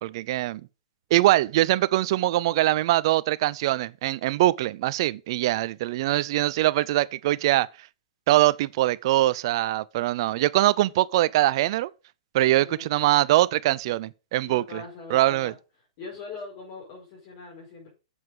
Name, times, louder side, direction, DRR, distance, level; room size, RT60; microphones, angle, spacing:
voice 1, 0.0-0.6 1.1-7.7 8.3-11.9 12.3-14.8 15.1-15.5, right 16 dB, 50° right, 0.5 m, -23 dB
voice 2, 12.4-12.9 14.4-15.6 16.0-17.9, left 4 dB, 45° left, 5.3 m, -41 dB
8.0 x 7.7 x 5.3 m
hypercardioid pair, 130°, 3 cm